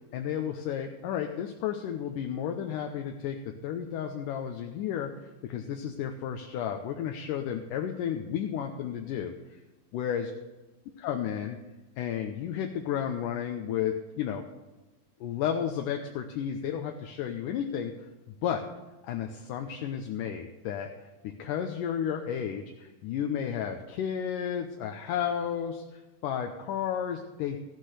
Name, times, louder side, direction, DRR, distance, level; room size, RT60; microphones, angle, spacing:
voice 1, 0.1-5.1 5.4-9.6 9.9-10.3 11.0-11.6 12.0-14.5 15.2-18.0 18.4-18.6 19.0-27.6, left 9 dB, 75° left, 3 dB, 2.3 m, -32 dB
14.5 x 12.0 x 3.3 m, 1.1 s
omnidirectional pair, 3.9 m